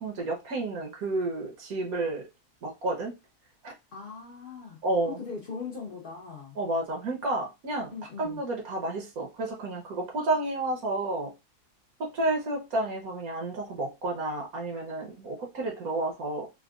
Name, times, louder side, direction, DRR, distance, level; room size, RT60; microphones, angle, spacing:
voice 1, 0.0-2.3 2.6-3.1 3.6-3.7 4.8-5.2 6.6-11.3 12.0-16.5, right 2 dB, 70° right, 1.3 m, -31 dB
voice 2, 3.9-6.6 7.9-8.4, left 5 dB, 50° left, 0.7 m, -40 dB
3.5 x 2.2 x 2.3 m
omnidirectional pair, 1.6 m